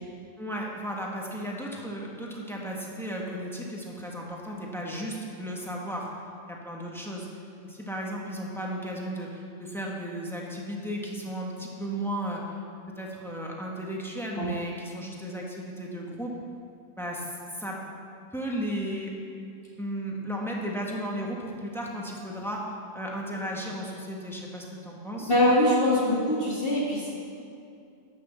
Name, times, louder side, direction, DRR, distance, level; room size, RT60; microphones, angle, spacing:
voice 1, 0.4-6.1 6.5-7.3 7.6-12.4 13.0-16.3 17.0-17.8 18.3-19.1 19.8-25.3, equal, ahead, -2 dB, 1.5 m, -35 dB
voice 2, 25.3-27.1, left 1 dB, 45° left, -6 dB, 2.2 m, -23 dB
11.5 x 6.2 x 7.3 m, 2.5 s
omnidirectional pair, 1.3 m